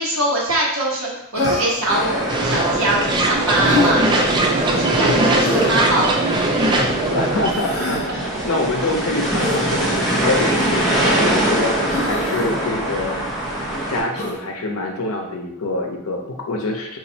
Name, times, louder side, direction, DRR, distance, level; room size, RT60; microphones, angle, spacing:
voice 1, 0.0-7.0 8.1-8.4, right 1 dB, 75° right, -3 dB, 1.0 m, -23 dB
Human voice, 1.3-1.9 3.6-3.9 5.4-5.8 7.5-8.0 9.4-9.6 10.5-10.8 11.9-12.5 14.1-14.4, left 2 dB, 30° left, 1.2 m, -24 dB
sound 1, 1.9-14.0, right 1 dB, ahead, 0.7 m, -23 dB
sound 2, 2.3-7.5, right 2 dB, 20° right, 0.3 m, -20 dB
voice 2, 4.9-5.6 7.1-8.0 8.4-13.2 13.9-17.0, left 2 dB, 85° left, 1 dB, 0.6 m, -25 dB
4.1 x 2.4 x 2.7 m, 0.82 s
head